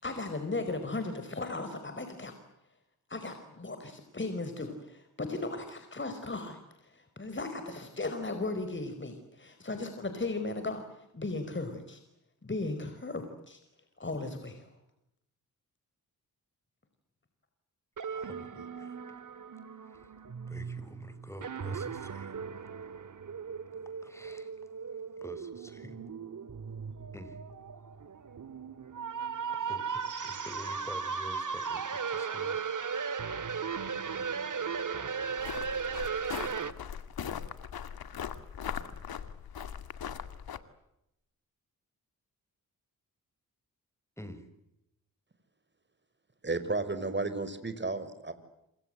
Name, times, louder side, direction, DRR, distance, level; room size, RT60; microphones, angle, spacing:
voice 1, 0.0-2.3 3.1-10.8 11.1-12.0 12.4-13.6 14.0-14.7, left 2 dB, 30° left, 8 dB, 5.1 m, -36 dB
voice 2, 18.0-19.0 19.9-20.1 20.5-22.3 24.0-24.5 25.2-26.0 27.1-27.4 29.5-32.8 44.2-44.5, equal, 10° left, 12 dB, 6.7 m, -48 dB
Abstract Guitar, 18.0-36.7, right 6 dB, 60° right, 2.4 m, -37 dB
sound 1, 35.4-40.6, left 8 dB, 85° left, 2.2 m, -39 dB
voice 3, 46.4-48.3, right 3 dB, 30° right, 11 dB, 5.5 m, -33 dB
28.5 x 26.0 x 7.9 m, 0.85 s
cardioid pair, 65°, 35 cm